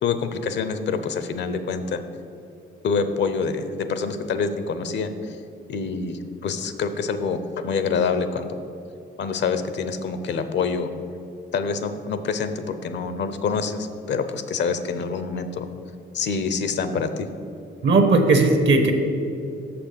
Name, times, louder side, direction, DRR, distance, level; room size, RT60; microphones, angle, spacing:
voice 1, 0.0-2.0 2.8-5.4 5.7-8.5 9.2-10.9 11.5-15.7 16.1-17.3, left 5 dB, 65° left, 10 dB, 0.7 m, -26 dB
voice 2, 17.8-18.9, right 3 dB, 65° right, 5 dB, 1.2 m, -17 dB
6.5 x 6.0 x 6.7 m, 2.7 s
cardioid pair, 90°, 20 cm